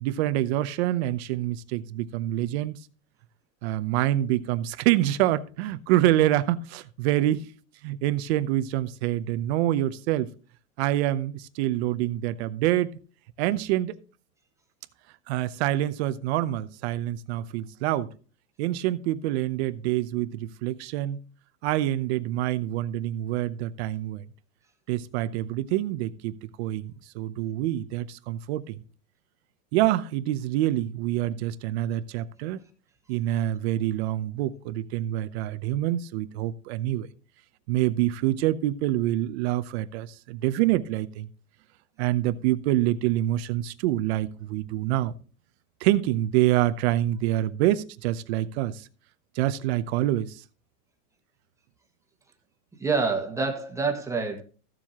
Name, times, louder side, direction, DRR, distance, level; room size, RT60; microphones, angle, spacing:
voice 1, 0.0-2.8 3.6-7.5 7.8-10.3 10.8-13.0 13.4-14.0 15.3-18.1 18.6-21.2 21.6-24.2 24.9-28.8 29.7-32.6 33.1-37.1 37.7-41.3 42.0-45.1 45.8-48.8 49.3-50.4, right 14 dB, 40° right, 0.7 m, -26 dB
voice 2, 52.8-54.4, right 4 dB, 5° right, 1.6 m, -27 dB
15.0 x 7.4 x 2.9 m
supercardioid pair, 150°, 48 cm